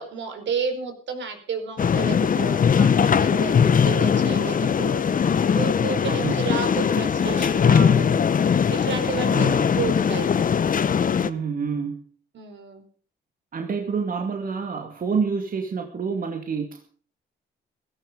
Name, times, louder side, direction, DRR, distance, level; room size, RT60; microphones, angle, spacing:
voice 1, 0.0-3.6 3.8-10.3 12.3-12.8, right 5 dB, 65° right, 6 dB, 4.5 m, -31 dB
sound 1, 1.8-11.3, left 7 dB, 45° left, 1.1 m, -20 dB
voice 2, 11.2-12.0 13.5-17.0, right 5 dB, 45° right, 3 dB, 2.3 m, -28 dB
16.0 x 14.5 x 5.2 m, 0.42 s
cardioid pair, 90°, 20 cm